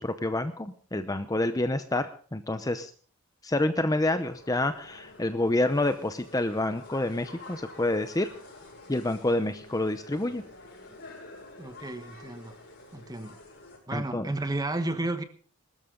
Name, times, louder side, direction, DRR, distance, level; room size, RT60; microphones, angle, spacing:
voice 1, 0.0-2.9 3.4-8.3 8.9-10.4 13.9-14.3, left 2 dB, 15° left, 0.7 m, -28 dB
sound 1, 4.2-13.8, left 2 dB, 50° left, 6.6 m, -48 dB
voice 2, 11.6-12.5 12.9-13.4 13.9-15.2, right 2 dB, 15° right, 1.2 m, -32 dB
20.5 x 13.0 x 3.8 m
head